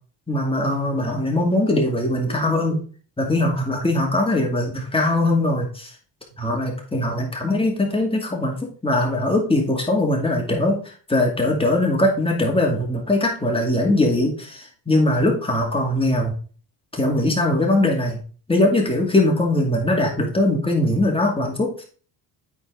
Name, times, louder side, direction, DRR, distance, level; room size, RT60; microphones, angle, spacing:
voice 1, 0.3-2.8 3.2-5.9 6.4-8.5 8.8-10.8 11.1-16.4 16.9-18.2 18.5-21.8, left 1 dB, 10° left, 0 dB, 2.5 m, -21 dB
8.5 x 4.5 x 4.1 m, 0.40 s
cardioid pair, 90°, 43 cm